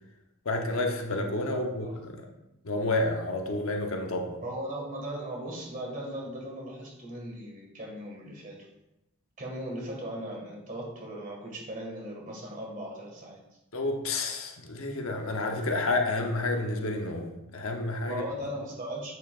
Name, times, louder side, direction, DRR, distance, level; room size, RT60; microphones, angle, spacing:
voice 1, 0.4-2.2 2.6-4.4 13.7-18.2, left 2 dB, 65° left, 3 dB, 0.9 m, -30 dB
voice 2, 1.5-2.0 4.4-8.6 9.4-13.4 14.9-15.1 18.0-19.1, right 1 dB, 35° right, -1 dB, 1.9 m, -38 dB
8.1 x 7.0 x 2.5 m, 0.91 s
head